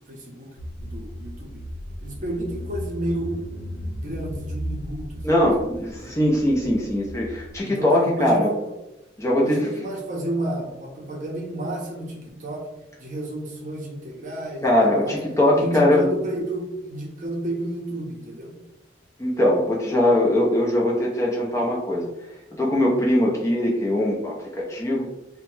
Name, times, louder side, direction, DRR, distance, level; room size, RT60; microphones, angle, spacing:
voice 1, 0.1-0.5 0.8-1.6 2.0-3.3 4.0-5.5 5.7-6.1 7.6-8.7 9.4-12.6 13.0-15.2 15.5-18.5, right 1 dB, 40° right, -1 dB, 0.6 m, -31 dB
Car / Engine, 0.6-7.6, equal, 85° left, 0.5 m, -35 dB
voice 2, 5.2-8.5 9.2-9.7 14.6-16.1 19.2-22.1 22.6-25.1, left 1 dB, 15° left, -3 dB, 0.4 m, -21 dB
2.7 x 2.1 x 3.1 m, 0.91 s
head